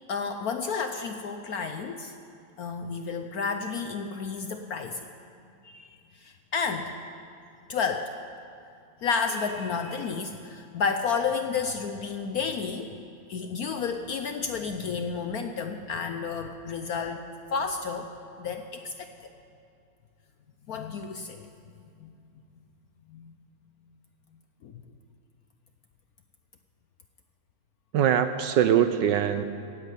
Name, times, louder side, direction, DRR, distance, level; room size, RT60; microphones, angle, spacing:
voice 1, 0.1-2.1 2.6-5.1 5.6-6.9 7.7-8.1 9.0-13.0 13.3-17.2 17.5-18.1 18.4-19.3 20.7-21.5 22.0-22.1 23.1-23.3 24.6-24.7, left 5 dB, 70° left, 7 dB, 0.8 m, -31 dB
voice 2, 27.9-29.4, right 9 dB, 70° right, 10 dB, 1.1 m, -22 dB
16.5 x 9.9 x 8.3 m, 2.5 s
omnidirectional pair, 2.3 m